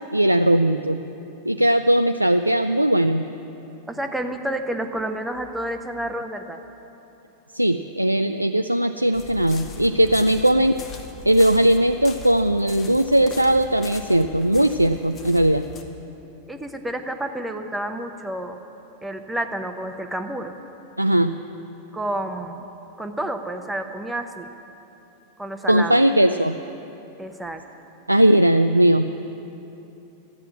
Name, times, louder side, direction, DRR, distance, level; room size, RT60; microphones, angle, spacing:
voice 1, 0.1-1.0 1.4-3.3 7.5-10.8 11.2-15.7 21.0-21.4 25.7-26.6 28.1-29.1, right 1 dB, 85° right, 8 dB, 0.3 m, -19 dB
voice 2, 3.9-6.6 10.2-10.3 16.5-18.6 19.0-20.5 21.9-22.7 23.0-24.5 25.4-26.1 27.2-27.6, right 1 dB, 5° right, 6 dB, 1.0 m, -30 dB
sound 1, 9.1-15.8, left 5 dB, 25° left, 1.2 m, -40 dB
13.5 x 9.0 x 8.6 m, 3.0 s
figure-of-eight pair, 90°, 0 cm